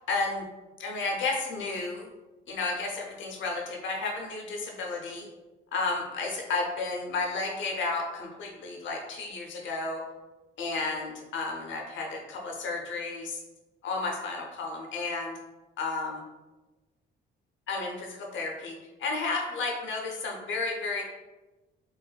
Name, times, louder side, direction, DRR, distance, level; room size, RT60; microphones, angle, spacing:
voice 1, 0.1-0.4 0.8-2.1 2.5-5.3 5.7-10.0 10.6-13.4 13.8-15.4 15.8-16.2 17.7-18.7 19.0-21.0, left 3 dB, 70° left, 0 dB, 0.8 m, -32 dB
4.2 x 2.5 x 2.3 m, 1.1 s
cardioid pair, 90°, 20 cm